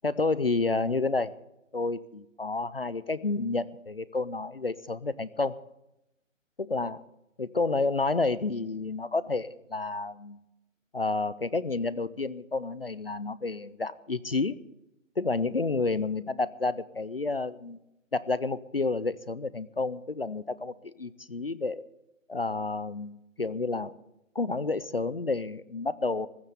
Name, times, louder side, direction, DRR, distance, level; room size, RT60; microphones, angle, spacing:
voice 1, 0.0-1.3 1.7-5.6 6.6-7.0 7.4-10.4 10.9-14.6 15.2-17.8 18.1-21.9 22.3-23.9 24.4-26.3, left 3 dB, 50° left, 18 dB, 0.5 m, -30 dB
15.0 x 7.4 x 9.3 m, 0.87 s
hypercardioid pair, 180°, 39 cm